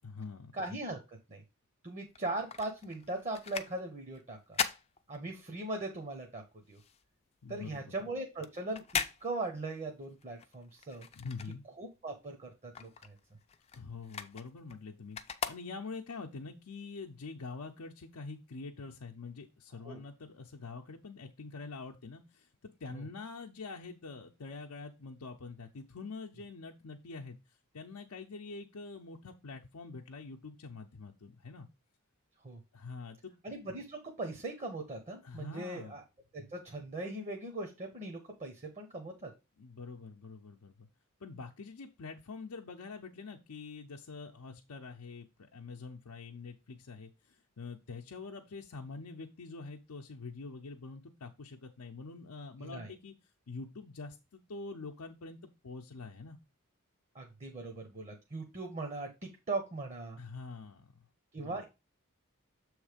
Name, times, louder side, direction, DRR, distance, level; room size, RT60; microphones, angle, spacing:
voice 1, 0.0-0.5 7.4-8.0 11.1-11.6 13.7-27.4 27.7-31.7 32.7-33.3 35.2-36.0 39.6-40.9 41.2-45.3 45.5-53.1 53.5-55.4 55.6-56.4 60.2-60.9 61.4-61.6, left 4 dB, 85° left, 1 dB, 0.6 m, -45 dB
voice 2, 0.5-1.4 1.8-4.6 5.1-6.4 6.7-6.8 7.5-8.8 9.2-11.1 11.8-13.2 19.8-20.0 22.9-23.0 32.4-32.6 33.4-36.0 36.3-39.3 52.6-52.9 57.1-60.2 61.3-61.7, right 2 dB, 30° right, 2 dB, 0.8 m, -39 dB
sound 1, 2.1-5.8 6.1-12.1 12.4-16.2 16.7-16.8, left 7 dB, 30° left, 0.4 m, -40 dB
7.2 x 3.2 x 4.9 m, 0.26 s
head